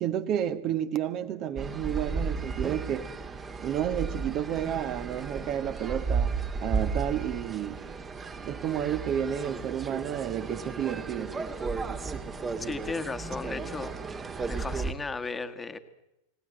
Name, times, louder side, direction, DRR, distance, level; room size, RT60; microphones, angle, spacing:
voice 1, 0.0-3.1 3.6-7.8 8.4-11.4, right 10 dB, 35° right, 1.7 m, -31 dB
sound 1, 1.6-14.9, right 4 dB, 20° right, 2.0 m, -34 dB
voice 2, 12.6-14.0 14.5-15.8, left 4 dB, 10° left, 1.8 m, -35 dB
29.5 x 19.0 x 8.0 m
figure-of-eight pair, 90°, 0 cm